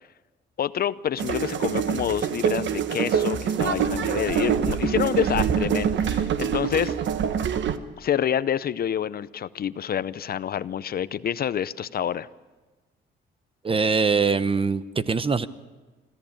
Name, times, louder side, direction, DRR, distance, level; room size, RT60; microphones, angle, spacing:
voice 1, 0.6-6.9 8.0-12.3, left 9 dB, 50° left, 17 dB, 0.6 m, -27 dB
sound 1, 1.2-7.8, right 8 dB, 70° right, 1.2 m, -25 dB
voice 2, 13.6-15.5, right 4 dB, 25° right, 14 dB, 0.9 m, -23 dB
25.5 x 14.0 x 8.8 m, 1.3 s
cardioid pair, 90°, 20 cm